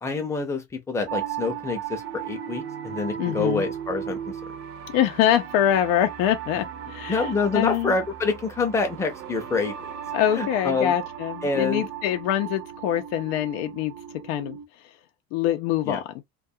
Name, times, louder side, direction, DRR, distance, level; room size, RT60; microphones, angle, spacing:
voice 1, 0.0-4.3 7.1-9.9 10.3-10.9 11.4-11.9 15.9-16.0, left 4 dB, 10° left, 0.5 m, -27 dB
sound 1, 1.1-14.7, right 9 dB, 45° right, 0.5 m, -36 dB
voice 2, 3.2-3.6 4.9-8.0 10.1-13.9 14.2-15.0 15.3-16.0, left 11 dB, 90° left, 0.6 m, -24 dB
2.3 x 2.3 x 2.7 m
cardioid pair, 150°, 31 cm